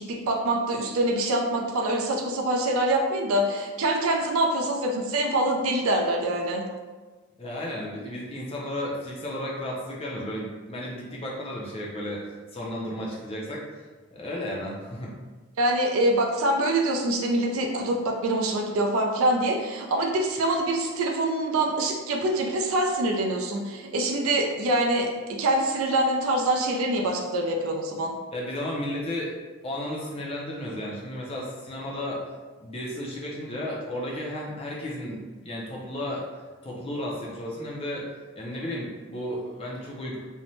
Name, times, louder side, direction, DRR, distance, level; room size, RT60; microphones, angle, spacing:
voice 1, 0.0-6.6 15.6-28.1, right 1 dB, 75° right, 1 dB, 0.4 m, -25 dB
voice 2, 7.4-15.2 28.3-29.3 29.6-32.2 32.6-38.1 38.4-40.2, left 1 dB, 25° left, -3 dB, 0.4 m, -33 dB
2.6 x 2.1 x 3.0 m, 1.3 s
head